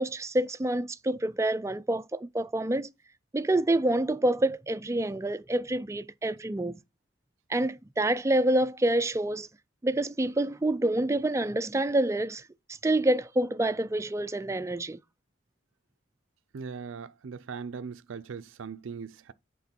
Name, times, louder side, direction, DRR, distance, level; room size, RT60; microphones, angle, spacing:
voice 1, 0.0-2.9 3.3-6.8 7.5-9.5 9.8-12.4 12.7-15.0, right 1 dB, 15° right, 0.3 m, -27 dB
voice 2, 16.5-19.3, right 5 dB, 80° right, 0.4 m, -39 dB
8.3 x 3.7 x 4.2 m
head